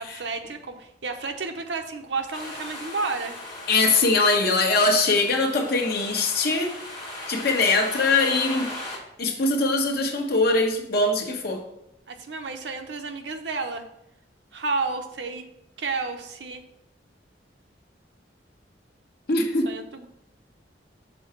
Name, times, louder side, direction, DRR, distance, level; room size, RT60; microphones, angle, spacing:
voice 1, 0.0-3.4 12.1-13.9 14.5-15.4 15.8-16.6 19.6-20.1, right 4 dB, 75° right, 6 dB, 0.8 m, -31 dB
sound 1, 2.3-9.0, left 1 dB, 25° left, 2.5 m, -38 dB
voice 2, 3.7-6.7 7.3-8.7 9.2-11.6 19.3-19.7, left 3 dB, 60° left, 3 dB, 1.1 m, -22 dB
6.2 x 3.9 x 5.7 m, 0.79 s
head